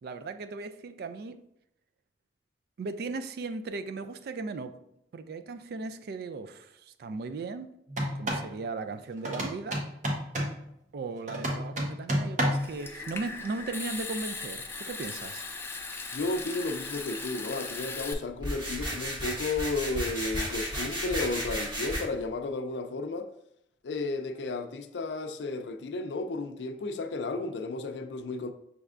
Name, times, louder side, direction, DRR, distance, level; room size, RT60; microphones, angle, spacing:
voice 1, 0.0-1.4 2.8-4.8 5.1-7.7 8.1-9.8 10.9-15.5, right 3 dB, 60° right, 0.3 m, -37 dB
sound 1, 7.9-8.5 9.2-10.6 11.3-12.7, equal, 45° right, 0.9 m, -30 dB
Water tap faucet / Sink (filling or washing) / Trickle dribble, 12.6-18.1, left 4 dB, 15° left, 0.4 m, -38 dB
voice 2, 16.1-23.3 23.8-28.5, left 3 dB, 80° left, 0.4 m, -33 dB
sound 2, 18.4-22.0, equal, 25° right, 1.8 m, -33 dB
6.2 x 3.3 x 2.4 m
head